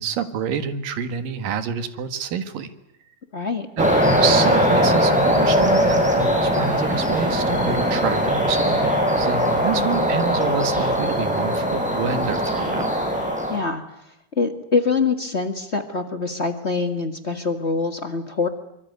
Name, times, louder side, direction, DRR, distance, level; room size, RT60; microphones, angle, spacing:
voice 1, 0.0-2.7 3.8-3.9 4.2-12.9, right 7 dB, 85° right, 10 dB, 3.4 m, -27 dB
voice 2, 3.3-3.7 9.7-10.0 13.5-13.8 14.3-18.5, left 4 dB, 35° left, 7 dB, 1.0 m, -24 dB
sound 1, 3.8-13.6, equal, ahead, 5.7 m, -20 dB
24.5 x 24.0 x 9.5 m, 0.78 s
omnidirectional pair, 3.8 m